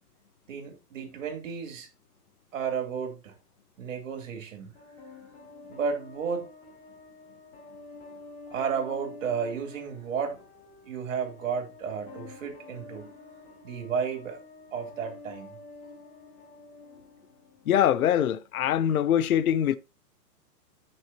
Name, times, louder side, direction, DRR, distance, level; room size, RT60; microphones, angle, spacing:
voice 1, 0.5-1.9 2.5-3.3 3.8-4.7 5.7-6.5 8.5-10.4 10.8-13.1 13.6-14.4 14.7-15.5, right 6 dB, 50° right, 3.4 m, -32 dB
sound 1, 4.8-17.8, left 3 dB, 15° left, 1.9 m, -48 dB
voice 2, 17.7-19.8, left 10 dB, 60° left, 0.8 m, -23 dB
15.5 x 6.5 x 2.9 m
hypercardioid pair, 175°, 49 cm